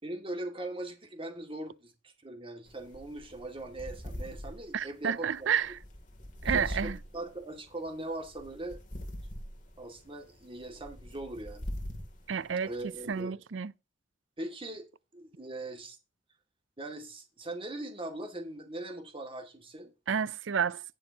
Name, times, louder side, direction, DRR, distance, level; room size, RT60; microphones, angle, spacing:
voice 1, 0.0-5.5 6.4-8.8 9.8-11.7 12.6-13.4 14.4-14.9 15.1-16.0 16.8-19.9, right 2 dB, 30° right, 2.2 m, -40 dB
sound 1, 2.7-13.2, equal, 40° left, 2.8 m, -43 dB
voice 2, 4.7-5.7 6.4-7.0 12.3-12.7 13.1-13.7 20.1-20.8, right 7 dB, 75° right, 0.5 m, -30 dB
18.0 x 6.3 x 2.9 m
head